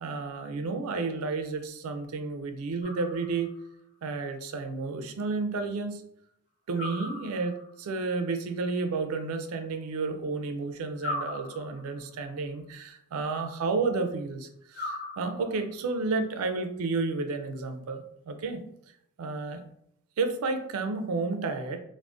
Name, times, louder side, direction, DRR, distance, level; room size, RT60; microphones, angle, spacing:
voice 1, 0.0-3.5 4.0-6.0 6.7-18.6 19.2-19.6 20.2-21.8, right 3 dB, 75° right, 7 dB, 0.4 m, -31 dB
sound 1, 2.8-3.7 6.7-7.8 11.0-12.1 14.7-15.7, left 2 dB, 45° left, 0.7 m, -38 dB
3.5 x 2.0 x 2.4 m, 0.72 s
head